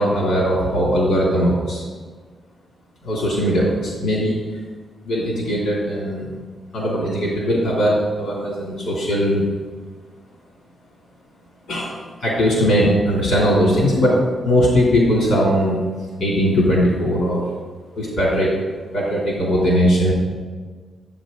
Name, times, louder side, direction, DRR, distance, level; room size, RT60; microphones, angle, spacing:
voice 1, 0.0-1.8 3.0-4.4 5.0-6.3 6.7-9.4 11.7-14.2 14.4-15.8 16.2-17.4 18.0-18.5 18.9-20.1, equal, 75° left, -5 dB, 3.1 m, -19 dB
11.0 x 8.0 x 3.9 m, 1.5 s
wide cardioid pair, 130°, 0 cm